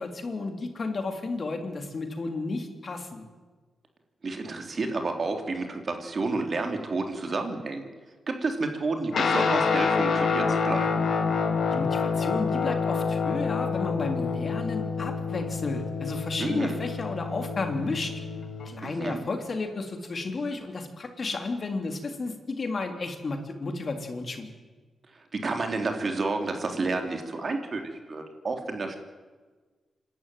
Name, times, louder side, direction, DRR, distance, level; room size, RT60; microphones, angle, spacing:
voice 1, 0.0-3.2 11.7-18.1 18.6-24.5, left 3 dB, 50° left, 5 dB, 3.3 m, -32 dB
voice 2, 4.2-7.9 8.3-11.0 16.4-16.8 18.8-19.2 25.3-29.0, right 3 dB, 50° right, 5 dB, 3.4 m, -30 dB
Guitar, 9.1-18.8, left 5 dB, 70° left, 2.4 m, -27 dB
26.5 x 12.5 x 9.4 m, 1.4 s
cardioid pair, 55°, 0 cm